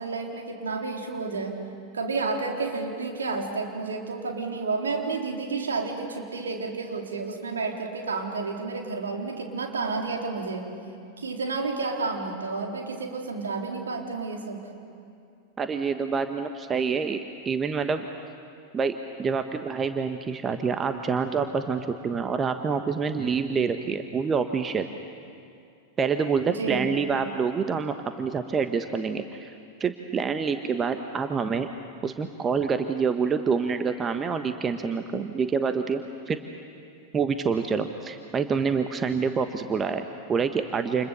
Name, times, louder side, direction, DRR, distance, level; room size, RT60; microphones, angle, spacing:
voice 1, 0.0-1.6 1.9-10.6 11.2-14.6 26.4-26.8, right 4 dB, 70° right, 1 dB, 3.8 m, -31 dB
voice 2, 15.6-18.0 18.7-24.9 26.0-29.5 29.8-31.7 32.0-36.0 36.3-36.4 37.1-41.1, right 5 dB, 20° right, 8 dB, 1.3 m, -27 dB
29.5 x 28.5 x 7.1 m, 2.5 s
figure-of-eight pair, 90°, 0 cm